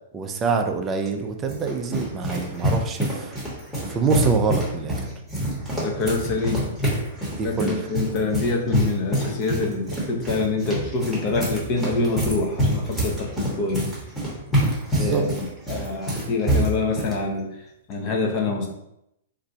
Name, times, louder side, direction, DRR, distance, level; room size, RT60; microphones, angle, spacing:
voice 1, 0.1-3.3 3.9-5.1 7.4-7.9 14.9-15.2, right 5 dB, 20° right, 5 dB, 0.4 m, -25 dB
sound 1, 1.1-17.2, right 1 dB, ahead, 0.9 m, -26 dB
voice 2, 5.8-6.7 7.4-13.9 14.9-15.3 15.7-17.6 17.9-18.7, left 3 dB, 35° left, 1 dB, 0.6 m, -25 dB
2.5 x 2.2 x 3.9 m, 0.81 s
hypercardioid pair, 150°, 0 cm